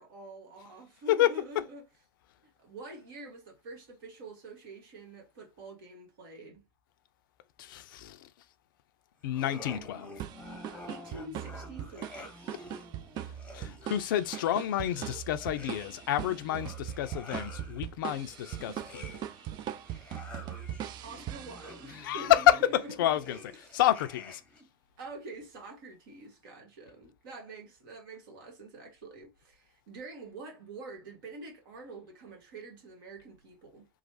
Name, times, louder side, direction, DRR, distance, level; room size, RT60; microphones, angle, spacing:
voice 1, 0.0-1.8 2.4-6.6 10.9-12.2 21.0-23.1 23.5-23.8 25.0-33.9, right 2 dB, 60° right, 1.3 m, -46 dB
voice 2, 7.6-8.3 9.2-10.2 13.5-19.2 22.0-22.6 23.0-23.4 23.7-24.4, left 12 dB, 60° left, 0.4 m, -29 dB
sound 1, 9.3-24.6, left 1 dB, 10° left, 0.8 m, -49 dB
sound 2, 10.2-22.1, right 11 dB, 35° right, 0.4 m, -41 dB
3.1 x 2.1 x 2.7 m
figure-of-eight pair, 85°, 12 cm